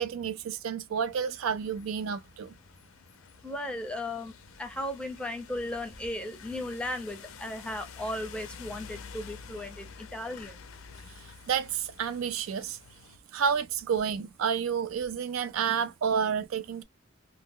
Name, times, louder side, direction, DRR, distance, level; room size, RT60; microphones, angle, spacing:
voice 1, 0.0-2.5 11.5-12.8 13.3-16.8, right 7 dB, 75° right, 0.4 m, -30 dB
sound 1, 1.0-13.2, left 6 dB, 80° left, 0.5 m, -49 dB
voice 2, 3.4-10.6, left 1 dB, 5° left, 0.6 m, -36 dB
2.2 x 2.0 x 3.5 m
head